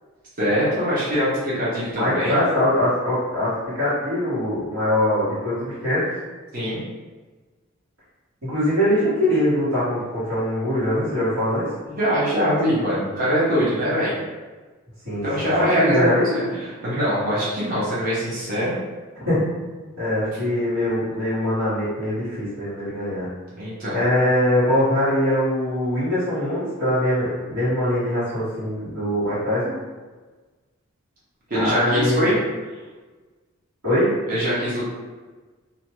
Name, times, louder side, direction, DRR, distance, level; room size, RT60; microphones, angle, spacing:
voice 1, 0.4-2.4 6.5-6.8 11.0-11.1 11.9-14.1 15.2-18.7 23.6-24.0 31.5-32.4 34.3-34.9, equal, 40° right, -8 dB, 0.7 m, -23 dB
voice 2, 1.9-6.1 8.4-11.7 15.0-16.3 19.2-19.4 20.0-23.3 23.9-29.7 31.5-32.3 33.8-34.1, left 1 dB, 75° right, -14 dB, 1.4 m, -22 dB
2.6 x 2.2 x 2.9 m, 1.3 s
head